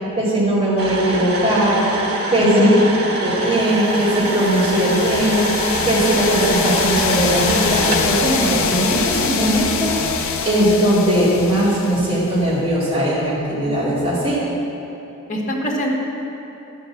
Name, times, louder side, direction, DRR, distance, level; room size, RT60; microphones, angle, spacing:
voice 1, 0.2-1.8 2.3-2.7 3.2-5.4 5.8-14.4, right 1 dB, 25° right, -10 dB, 2.6 m, -19 dB
sound 1, 0.8-8.1, right 2 dB, 80° right, 1.6 m, -24 dB
voice 2, 2.4-3.1 15.3-15.9, left 1 dB, 35° left, -3 dB, 1.7 m, -20 dB
sound 2, 3.7-12.4, left 5 dB, 70° left, 0.7 m, -24 dB
11.5 x 5.5 x 7.3 m, 2.9 s
head